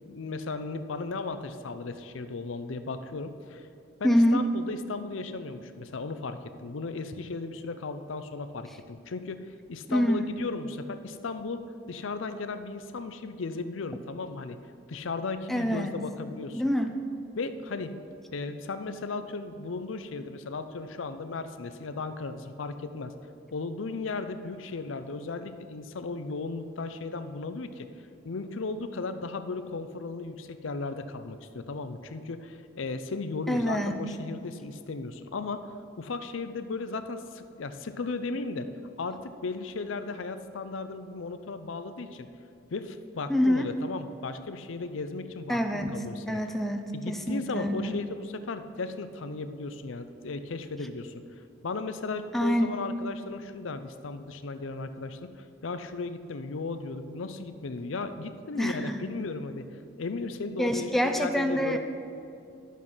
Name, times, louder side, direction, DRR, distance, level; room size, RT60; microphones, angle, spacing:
voice 1, 0.1-3.7 4.0-9.4 9.7-14.6 14.9-16.6 17.4-18.0 18.3-23.1 23.5-27.9 28.2-35.7 36.0-38.7 39.0-42.3 42.7-46.4 46.9-51.2 51.6-59.7 60.0-61.8, left 3 dB, 80° left, 10 dB, 0.6 m, -36 dB
voice 2, 4.0-4.4 9.9-10.3 15.5-16.0 16.5-16.9 33.5-33.9 43.3-43.7 45.5-48.0 52.3-52.7 58.6-59.0 60.6-61.8, equal, ahead, 5 dB, 0.4 m, -26 dB
11.0 x 7.3 x 5.6 m, 2.5 s
head